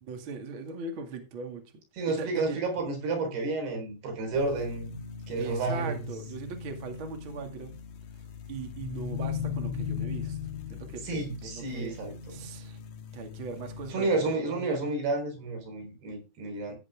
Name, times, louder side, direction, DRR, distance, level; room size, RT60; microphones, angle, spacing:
voice 1, 0.0-1.6 2.1-2.6 5.4-7.8 8.5-10.4 10.7-12.0 12.3-12.8 13.1-14.8, right 4 dB, 35° right, 2.4 m, -39 dB
voice 2, 2.0-5.0 5.3-6.0 11.0-12.4 13.9-16.7, right 3 dB, 70° right, 6.0 m, -31 dB
sound 1, 4.3-13.9, left 7 dB, 60° left, 2.2 m, -38 dB
16.0 x 8.6 x 3.6 m
omnidirectional pair, 4.8 m